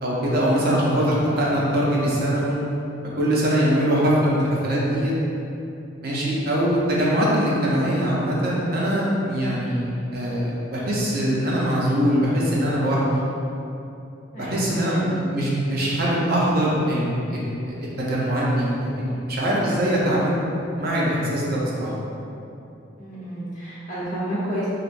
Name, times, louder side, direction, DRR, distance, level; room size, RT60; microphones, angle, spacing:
voice 1, 0.0-2.6 3.2-5.1 6.0-13.2 14.4-20.3 20.8-21.9, equal, 45° right, -6 dB, 0.5 m, -22 dB
voice 2, 14.3-15.0 23.0-24.7, right 1 dB, 40° left, -9 dB, 0.8 m, -31 dB
3.2 x 2.7 x 2.5 m, 2.8 s
head